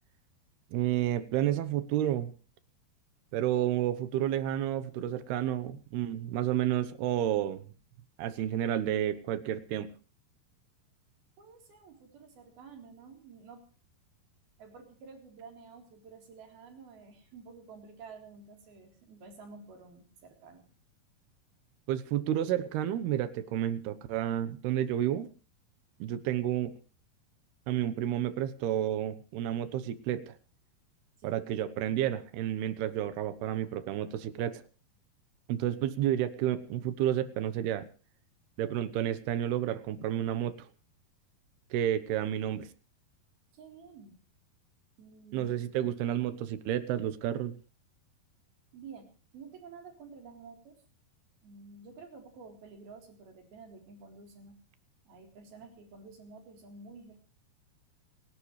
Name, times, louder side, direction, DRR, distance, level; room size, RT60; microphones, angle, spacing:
voice 1, 0.7-2.3 3.3-7.6 8.2-9.9 21.9-25.3 26.0-26.7 27.7-30.3 31.2-34.6 35.5-37.9 38.6-40.7 41.7-42.7 45.3-47.6, right 11 dB, 90° right, 13 dB, 3.1 m, -30 dB
voice 2, 11.4-13.6 14.6-20.7 31.2-31.3 43.5-44.2 45.0-45.5 48.7-50.8 51.4-54.6 55.1-57.2, right 4 dB, 70° right, 3 dB, 5.7 m, -51 dB
29.0 x 12.5 x 3.2 m, 0.37 s
omnidirectional pair, 4.5 m